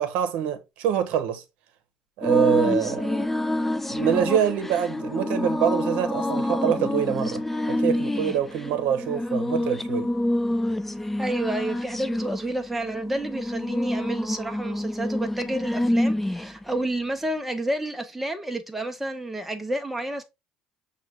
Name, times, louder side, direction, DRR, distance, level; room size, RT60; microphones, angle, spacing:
voice 1, 0.0-1.4 2.2-3.1 3.9-7.4 7.7-10.1, right 9 dB, 75° right, 0.9 m, -25 dB
sound 1, 2.2-16.6, left 1 dB, 10° left, 0.4 m, -27 dB
voice 2, 11.2-20.2, right 1 dB, 10° right, 0.9 m, -30 dB
6.1 x 2.4 x 3.3 m
supercardioid pair, 80°, 2 cm